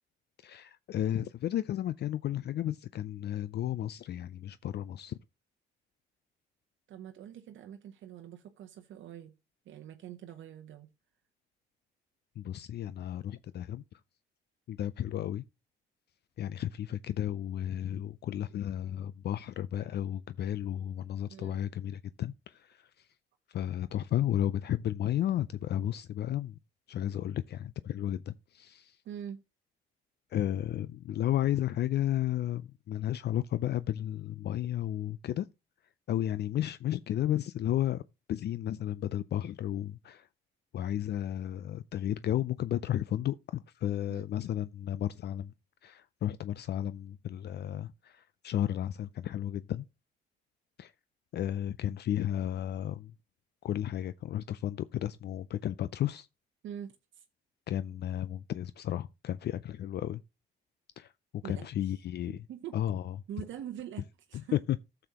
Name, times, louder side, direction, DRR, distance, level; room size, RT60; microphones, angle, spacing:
voice 1, 0.4-5.2 12.4-14.0 14.7-15.4 16.4-23.1 23.5-26.6 26.9-29.0 30.3-35.5 36.1-38.0 38.3-40.3 40.7-45.5 45.8-49.8 50.8-50.9 51.3-53.1 53.6-56.3 57.7-60.2 61.0-62.5 62.7-63.2 64.5-64.8, left 11 dB, 55° left, 0.4 m, -33 dB
voice 2, 6.9-9.3 9.7-10.9 21.3-21.6 29.0-29.4 44.1-44.3 56.6-57.3 61.4-61.9 62.3-62.8 63.3-64.6, right 10 dB, 75° right, 0.8 m, -44 dB
12.5 x 7.0 x 2.9 m
cardioid pair, 90°, 20 cm